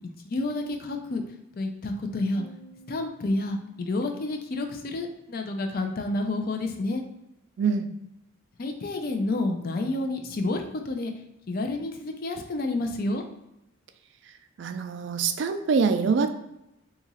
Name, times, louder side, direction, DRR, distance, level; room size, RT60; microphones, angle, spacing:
voice 1, 0.0-1.2 1.5-2.4 2.9-7.0 8.6-11.1 11.5-13.2, left 2 dB, 45° left, 5 dB, 0.4 m, -29 dB
Piano, 2.4-5.8, equal, 65° left, 0.8 m, -54 dB
voice 2, 7.6-7.9 14.6-16.3, right 5 dB, 55° right, 8 dB, 0.3 m, -24 dB
2.8 x 2.4 x 4.0 m, 0.86 s
head